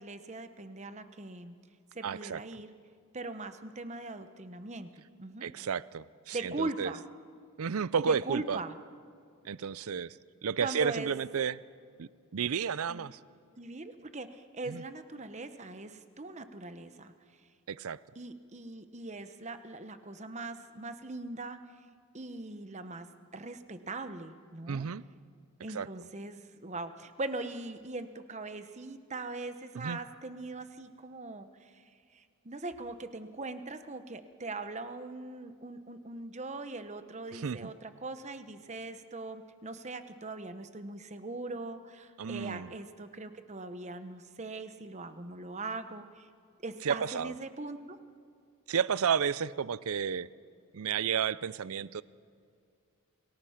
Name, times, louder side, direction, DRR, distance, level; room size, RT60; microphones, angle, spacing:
voice 1, 0.0-1.5 1.9-2.7 3.1-5.5 6.3-7.0 8.1-8.8 10.6-11.1 12.9-13.1 13.6-17.1 18.2-21.6 22.1-24.8 25.6-31.8 32.1-46.3 46.6-48.0, right 2 dB, 30° right, 10 dB, 1.0 m, -41 dB
voice 2, 2.0-2.4 5.4-6.9 7.6-8.6 9.4-11.6 12.0-13.2 14.7-14.8 17.7-18.0 24.7-25.0 25.7-25.9 29.7-30.0 37.3-37.7 42.2-42.7 46.8-47.3 48.7-50.3 50.7-52.0, right 7 dB, 75° right, 19 dB, 0.5 m, -32 dB
28.0 x 19.0 x 5.8 m, 2.3 s
head